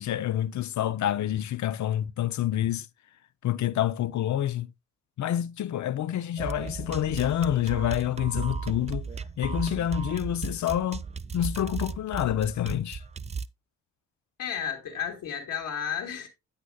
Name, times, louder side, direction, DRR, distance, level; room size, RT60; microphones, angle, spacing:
voice 1, 0.0-2.9 3.4-4.7 5.2-9.1 9.4-11.0 11.3-13.0, left 11 dB, 55° left, 0.6 m, -28 dB
sound 1, 6.4-13.5, right 5 dB, 20° right, 0.4 m, -35 dB
voice 2, 14.4-16.3, left 8 dB, 70° left, 2.2 m, -32 dB
8.8 x 8.0 x 2.2 m
supercardioid pair, 55°, 34 cm